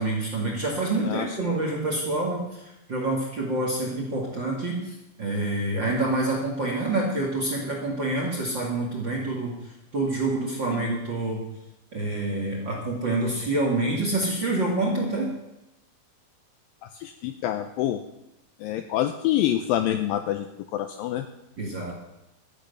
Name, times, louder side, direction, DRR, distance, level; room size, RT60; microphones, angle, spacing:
voice 1, 0.0-11.4 11.9-15.3 21.6-21.9, right 2 dB, 35° right, -1 dB, 2.1 m, -27 dB
voice 2, 16.9-18.0 18.6-20.5 20.7-21.3, left 12 dB, 80° left, 9 dB, 2.1 m, -26 dB
13.0 x 10.5 x 6.8 m, 0.92 s
omnidirectional pair, 4.6 m